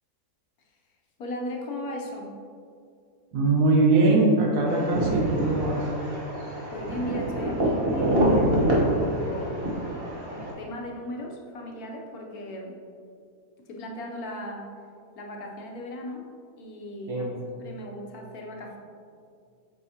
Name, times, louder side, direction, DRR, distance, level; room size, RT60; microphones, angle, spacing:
voice 1, 1.2-2.3 6.7-10.2 10.6-12.8 13.7-14.7 15.1-16.3 16.6-17.3 17.6-18.8, equal, 70° left, 0 dB, 1.3 m, -37 dB
voice 2, 3.3-5.8 17.1-17.3, right 2 dB, 70° right, -1 dB, 1.6 m, -21 dB
sound 1, 4.7-10.5, right 1 dB, 40° right, 1.3 m, -26 dB
8.1 x 5.7 x 2.8 m, 2.4 s
omnidirectional pair, 1.7 m